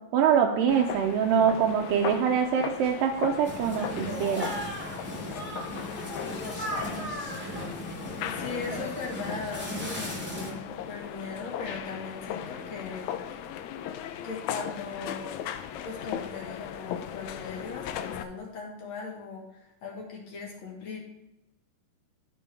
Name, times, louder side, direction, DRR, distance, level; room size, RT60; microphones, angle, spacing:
voice 1, 0.1-4.5, right 8 dB, 85° right, 1 dB, 2.3 m, -24 dB
sound 1, 0.7-18.2, left 9 dB, 90° left, 1.6 m, -37 dB
sound 2, 3.4-10.5, equal, 5° right, 0.9 m, -36 dB
voice 2, 8.2-13.1 14.2-15.3 15.8-21.0, left 4 dB, 60° left, -1 dB, 2.3 m, -39 dB
12.5 x 5.4 x 3.3 m, 0.92 s
omnidirectional pair, 3.9 m